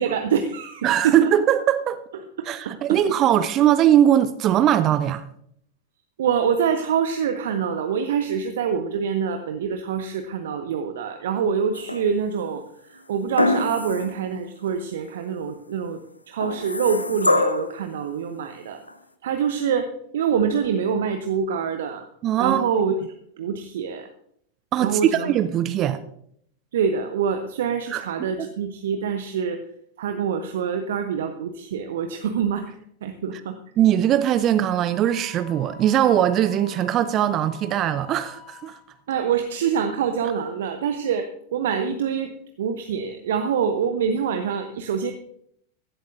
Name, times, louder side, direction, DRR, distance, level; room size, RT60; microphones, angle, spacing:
voice 1, 0.0-1.3 2.4-3.0 6.2-18.8 19.2-22.1 22.4-23.0 23.4-24.1 24.8-25.3 26.7-29.6 30.0-33.6 39.1-41.3 41.5-42.3 42.6-45.1, right 7 dB, 60° right, 0.8 m, -25 dB
voice 2, 0.8-2.0 2.5-5.3 22.2-22.6 24.7-26.0 27.9-28.0 28.4-28.5 33.8-38.8, right 11 dB, 35° right, 0.6 m, -20 dB
sound 1, 11.7-12.4 13.4-14.2 14.7-14.8 16.4-17.8 18.9-19.0, left 2 dB, 85° left, 0.7 m, -24 dB
Wind instrument woodwind instrument, 34.9-39.0, left 8 dB, 40° left, 1.3 m, -46 dB
16.0 x 11.5 x 2.6 m
figure-of-eight pair, 90°, 0 cm